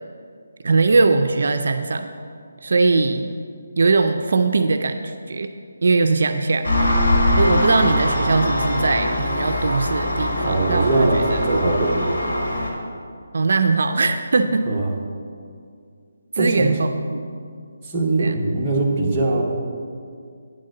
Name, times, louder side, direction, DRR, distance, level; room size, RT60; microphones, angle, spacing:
voice 1, 0.6-2.1 2.6-3.3 3.8-5.5 5.8-6.7 7.4-11.4 13.3-14.7 16.3-17.3 18.2-18.4, right 3 dB, 65° right, 7 dB, 0.4 m, -20 dB
Engine, 6.6-12.7, left 1 dB, 75° left, 1.7 m, -22 dB
voice 2, 10.4-12.0 14.7-14.9 16.4-16.8 17.8-19.4, right 2 dB, 10° right, -6 dB, 1.0 m, -21 dB
9.1 x 3.8 x 6.4 m, 2.2 s
hypercardioid pair, 170°, 0 cm